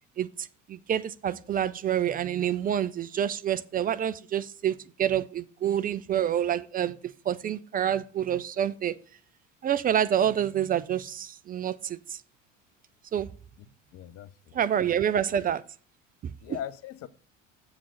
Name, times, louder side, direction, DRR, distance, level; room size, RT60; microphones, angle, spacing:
voice 1, 0.2-9.0 9.6-12.2 13.1-13.3 14.5-15.6 16.2-16.3, right 9 dB, 25° right, 0.4 m, -28 dB
voice 2, 13.9-14.6 14.9-15.0 16.4-17.1, left 10 dB, 40° left, 0.8 m, -40 dB
7.5 x 6.4 x 5.6 m
figure-of-eight pair, 65°, 37 cm